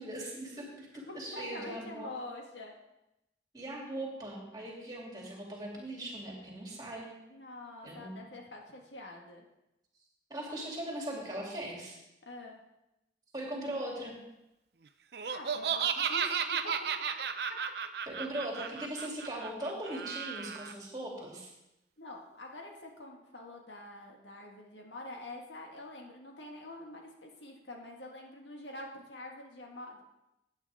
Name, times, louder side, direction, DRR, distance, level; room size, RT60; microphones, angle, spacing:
voice 1, 0.0-2.1 3.5-7.1 7.8-8.2 10.3-12.0 13.3-14.2 18.1-21.5, right 1 dB, 20° right, -2 dB, 2.9 m, -39 dB
voice 2, 1.1-2.8 7.3-9.4 12.2-12.6 15.3-16.7 22.0-30.0, left 2 dB, 85° left, 0 dB, 1.8 m, -46 dB
Laughter, 15.1-20.7, right 7 dB, 60° right, 0.5 m, -34 dB
15.0 x 8.8 x 3.6 m, 0.90 s
head